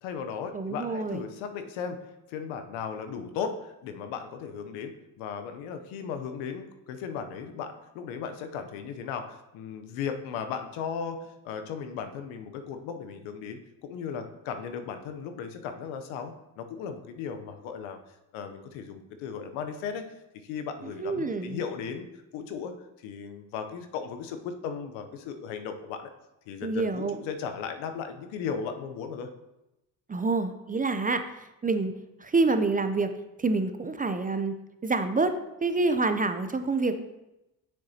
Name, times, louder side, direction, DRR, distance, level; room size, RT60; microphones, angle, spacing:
voice 1, 0.0-18.0 18.3-26.1 26.5-29.3, left 6 dB, 80° left, 7 dB, 0.8 m, -36 dB
voice 2, 0.5-1.2 21.0-21.6 26.6-27.2 30.1-31.2 31.6-33.1 33.4-34.6 34.8-35.3 35.6-37.0, right 3 dB, 20° right, 8 dB, 0.5 m, -27 dB
6.6 x 6.6 x 2.8 m, 0.92 s
supercardioid pair, 60°, 47 cm